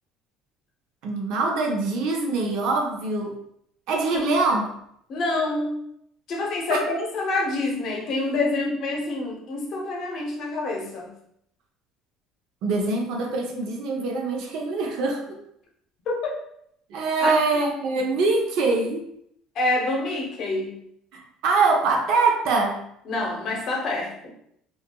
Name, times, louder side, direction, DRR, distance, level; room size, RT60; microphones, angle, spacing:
voice 1, 1.0-3.3 3.9-4.7 6.7-6.8 12.6-15.4 16.9-19.0 21.1-22.8, right 3 dB, 70° right, 2 dB, 0.5 m, -23 dB
voice 2, 5.1-5.8 6.3-11.1 16.1-16.4 17.2-17.4 19.6-20.8 23.1-24.3, left 2 dB, 55° left, 0 dB, 0.7 m, -27 dB
2.8 x 2.3 x 2.2 m, 0.72 s
supercardioid pair, 105°, 0 cm